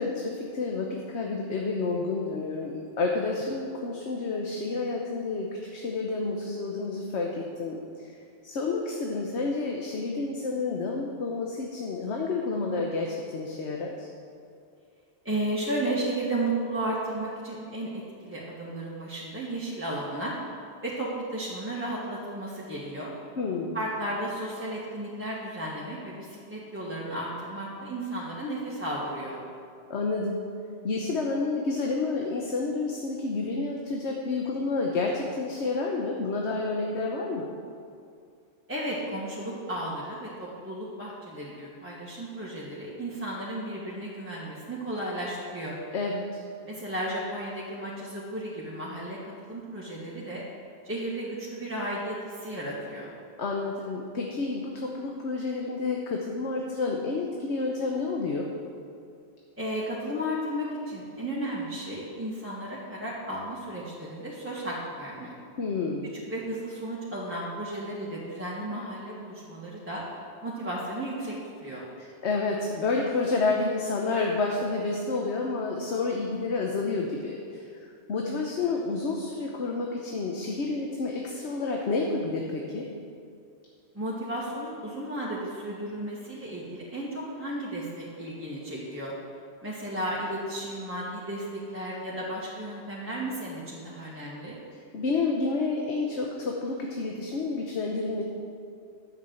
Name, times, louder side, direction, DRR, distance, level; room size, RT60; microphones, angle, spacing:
voice 1, 0.0-7.8 8.4-14.1 23.4-23.8 29.9-30.4 30.8-37.5 45.9-46.2 53.4-58.5 65.6-66.1 72.2-77.6 78.1-82.9 94.9-98.2, left 3 dB, 80° left, 0 dB, 1.3 m, -29 dB
voice 2, 15.2-20.4 20.8-23.1 23.7-29.4 38.7-45.8 46.6-50.5 50.8-53.1 59.6-65.3 66.3-70.0 70.4-71.3 71.6-71.8 83.9-89.1 89.6-94.6, right 1 dB, 10° right, -7 dB, 1.6 m, -34 dB
10.5 x 6.7 x 7.9 m, 2.3 s
omnidirectional pair, 1.1 m